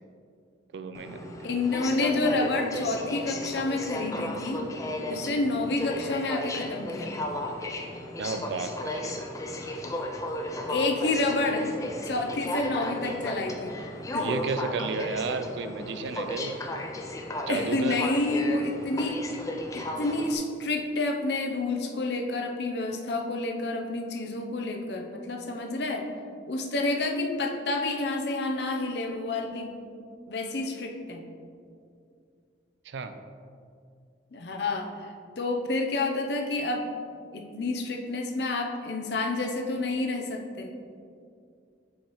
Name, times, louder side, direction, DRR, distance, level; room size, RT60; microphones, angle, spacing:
voice 1, 0.7-1.5 8.2-9.2 14.2-16.6 17.5-18.0 32.9-33.2, right 4 dB, 70° right, 9 dB, 0.4 m, -33 dB
Aircraft, 0.9-20.4, left 1 dB, 15° left, 0.4 m, -34 dB
voice 2, 1.4-4.6 5.0-7.1 10.7-11.7 12.0-13.8 14.1-14.3 17.4-19.2 19.7-26.1 26.5-29.7 30.3-31.2 34.3-35.1 35.4-36.9 37.3-40.7, left 2 dB, 60° left, 2 dB, 0.6 m, -29 dB
7.2 x 4.6 x 3.0 m, 2.4 s
head